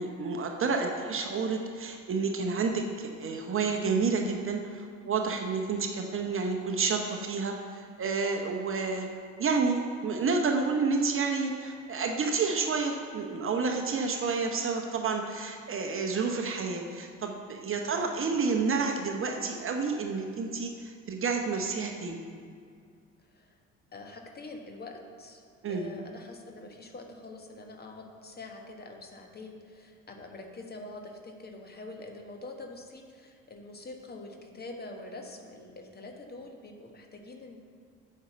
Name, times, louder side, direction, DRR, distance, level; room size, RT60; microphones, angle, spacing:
voice 1, 0.0-9.1 9.4-22.2 25.6-25.9, right 4 dB, 35° right, 3 dB, 0.9 m, -30 dB
voice 2, 17.7-18.3 23.3-23.6 23.9-25.4 25.7-37.6, left 2 dB, 25° left, 3 dB, 1.4 m, -45 dB
8.7 x 5.6 x 6.9 m, 2.2 s
figure-of-eight pair, 50°, 39 cm